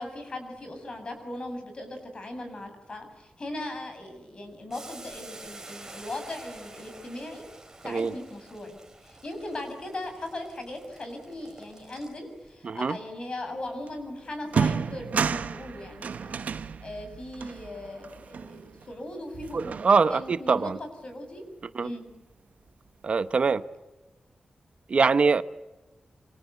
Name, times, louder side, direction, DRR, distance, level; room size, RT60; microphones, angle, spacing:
voice 1, 0.0-7.5 7.8-8.8 9.0-19.8 20.1-20.7 21.0-21.4 21.8-22.0, left 1 dB, 40° left, 7.4 m, -38 dB
Boiling, 4.7-12.5, right 2 dB, 20° right, 4.6 m, -48 dB
voice 2, 12.6-13.0 19.5-20.8 21.7-21.9 23.0-23.6 24.9-25.4, right 4 dB, 50° right, 0.9 m, -23 dB
sound 1, 13.9-14.0 14.4-19.0 19.3-20.3, right 6 dB, 80° right, 1.1 m, -32 dB
28.0 x 25.5 x 8.2 m
wide cardioid pair, 155°, 3 cm